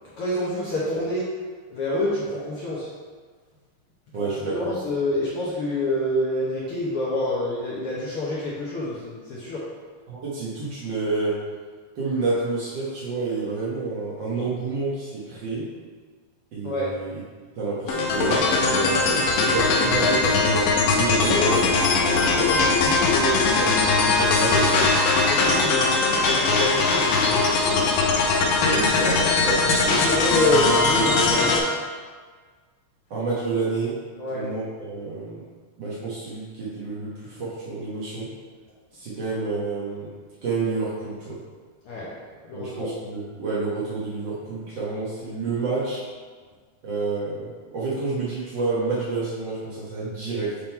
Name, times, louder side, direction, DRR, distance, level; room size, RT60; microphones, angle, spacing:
voice 1, 0.2-1.3 1.7-2.9 4.1-9.6 16.6-17.0 21.2-21.6 22.5-23.5 25.3-27.9 29.7-31.8 34.2-34.4 41.8-42.2 42.4-42.9, left 1 dB, 65° left, -7 dB, 1.4 m, -27 dB
voice 2, 4.1-4.7 10.1-11.4 11.9-15.7 16.5-17.2 17.6-22.5 23.2-24.9 28.5-30.1 33.1-34.0 34.3-35.4 35.8-38.3 38.9-40.1 40.4-41.4 42.5-46.0 46.8-50.6, right 3 dB, 60° right, -8 dB, 1.2 m, -29 dB
sound 1, 17.9-31.6, left 3 dB, 90° left, 2.5 m, -20 dB
7.4 x 3.8 x 4.4 m, 1.5 s
omnidirectional pair, 3.7 m